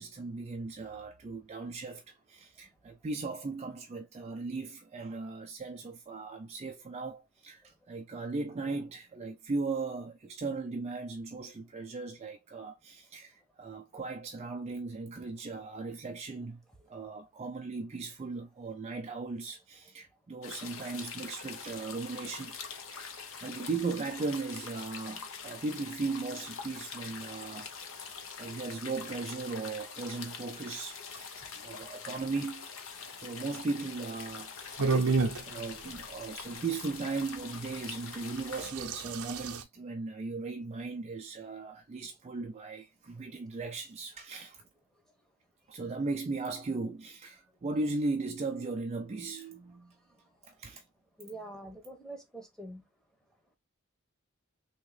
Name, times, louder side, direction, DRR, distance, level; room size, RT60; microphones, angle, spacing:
voice 1, 0.0-16.6 16.9-22.6 22.9-31.4 31.6-32.7 33.1-35.1 35.4-44.6 45.7-49.9 50.4-50.8 51.3-51.5, right 3 dB, 30° right, 0.4 m, -37 dB
sound 1, 20.4-38.7, left 5 dB, 65° left, 0.7 m, -44 dB
sound 2, 34.8-35.4 37.3-37.4 38.4-39.6, right 4 dB, 70° right, 0.6 m, -29 dB
voice 2, 51.2-52.8, right 1 dB, 5° left, 1.0 m, -45 dB
3.5 x 2.9 x 3.2 m
head